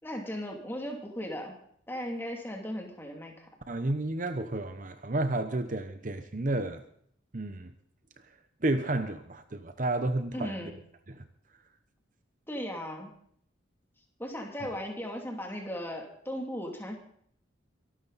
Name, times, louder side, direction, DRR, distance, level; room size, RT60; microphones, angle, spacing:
voice 1, 0.0-1.6 1.9-3.5 10.3-10.8 12.5-13.1 14.2-17.0, equal, 10° left, 1 dB, 2.7 m, -37 dB
voice 2, 3.7-6.8 7.3-7.7 8.6-10.5 11.1-11.2, right 2 dB, 40° right, 9 dB, 0.9 m, -31 dB
24.0 x 12.5 x 4.1 m, 0.65 s
head